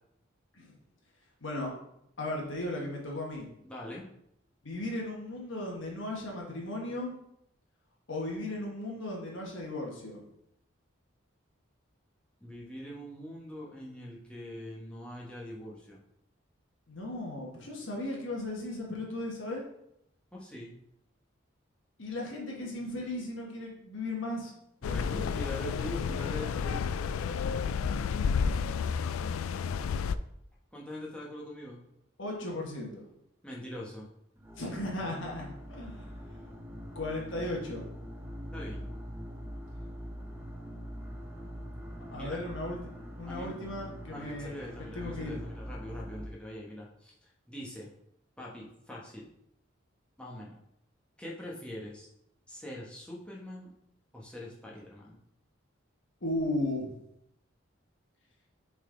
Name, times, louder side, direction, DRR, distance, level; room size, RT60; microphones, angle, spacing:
voice 1, 1.4-1.7 2.2-3.5 4.6-7.1 8.1-10.2 16.9-19.6 22.0-24.5 32.2-33.1 34.6-36.1 36.9-37.8 42.1-42.8 43.2-44.5 44.9-45.4 56.2-56.9, left 1 dB, 65° left, -1 dB, 1.3 m, -36 dB
voice 2, 3.6-4.0 12.4-16.0 20.3-20.7 24.8-26.8 30.7-31.8 33.4-34.1 38.5-38.9 42.1-42.4 43.3-43.5 44.1-47.1 47.5-47.9 48.4-49.3 50.2-50.6 51.2-52.1 52.5-53.7 54.1-55.2, left 1 dB, 5° left, -4 dB, 1.1 m, -43 dB
sound 1, 24.8-30.2, left 6 dB, 90° left, 0.3 m, -31 dB
sound 2, 34.4-46.3, equal, 10° right, 0.7 m, -43 dB
6.3 x 4.0 x 3.8 m, 0.77 s
head